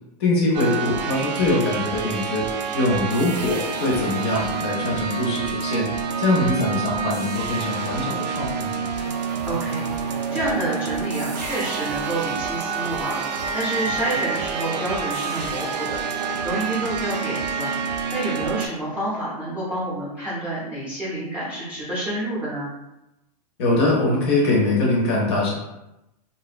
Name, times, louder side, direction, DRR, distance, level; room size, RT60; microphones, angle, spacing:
voice 1, 0.2-2.4 2.7-5.9 6.2-8.8 23.6-25.5, left 2 dB, 40° left, -3 dB, 0.6 m, -22 dB
sound 1, 0.5-18.7, right 6 dB, 90° right, 0.4 m, -28 dB
sound 2, 8.9-16.6, right 2 dB, 50° right, 0.7 m, -38 dB
voice 2, 9.4-17.7 18.1-22.7, right 1 dB, 5° right, -10 dB, 0.6 m, -29 dB
2.6 x 2.0 x 2.4 m, 0.91 s
supercardioid pair, 170°, 21 cm